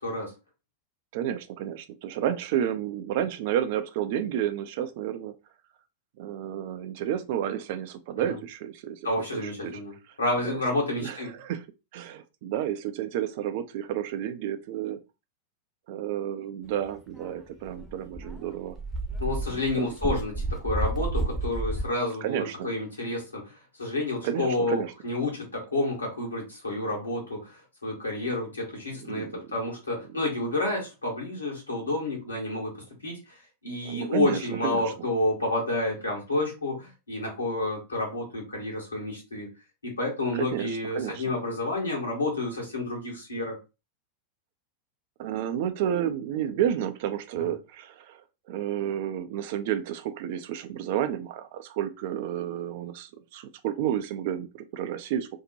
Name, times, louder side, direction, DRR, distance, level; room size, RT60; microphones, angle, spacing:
voice 1, 0.0-0.3 8.3-8.4 9.0-11.3 19.2-23.5 23.8-33.2 33.6-39.5 39.8-43.6 47.4-47.5, left 2 dB, 80° left, 1.2 m, -30 dB
voice 2, 1.1-5.3 6.2-9.0 9.3-9.8 10.4-10.6 11.0-11.6 11.9-15.0 15.9-18.8 19.7-19.9 22.2-22.7 24.2-24.9 28.9-29.4 33.8-34.9 40.4-41.4 45.2-48.2 48.5-55.3, right 10 dB, 50° right, 0.3 m, -31 dB
Dog, 17.2-17.3 17.7-21.8, right 2 dB, ahead, 0.6 m, -31 dB
2.6 x 2.1 x 2.7 m
figure-of-eight pair, 90°, 0 cm